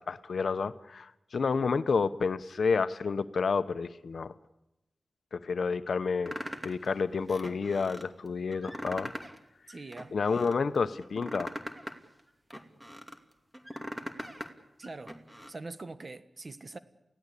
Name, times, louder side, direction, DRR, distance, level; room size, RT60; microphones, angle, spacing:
voice 1, 0.0-4.3 5.3-6.3 6.6-9.1 10.1-11.5, left 5 dB, 75° left, 0.9 m, -30 dB
sound 1, 6.3-6.9 7.3-8.0 8.5-9.4 9.7-10.6 11.0-13.2 13.5-14.5 14.8-15.5, equal, 15° right, 2.6 m, -41 dB
voice 2, 9.7-10.2 14.8-15.2 15.5-16.8, right 3 dB, 45° right, 1.5 m, -43 dB
28.5 x 16.5 x 8.4 m
cardioid pair, 65°, 0 cm